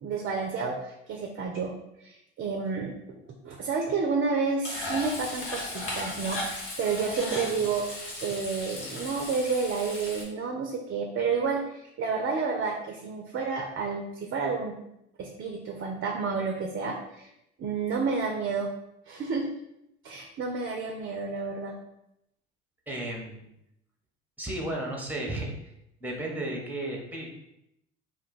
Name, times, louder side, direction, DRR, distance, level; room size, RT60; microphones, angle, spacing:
voice 1, 0.0-2.9 3.4-14.8 15.2-17.3 17.6-18.7 19.1-19.5 20.0-21.8, right 4 dB, 35° right, 2 dB, 0.5 m, -30 dB
Frying (food), 4.6-10.2, left 1 dB, 80° left, 1.0 m, -36 dB
voice 2, 22.9-23.4 24.4-25.5 26.0-27.3, right 1 dB, 5° right, 0 dB, 0.9 m, -33 dB
2.5 x 2.2 x 3.9 m, 0.82 s
hypercardioid pair, 60°, 34 cm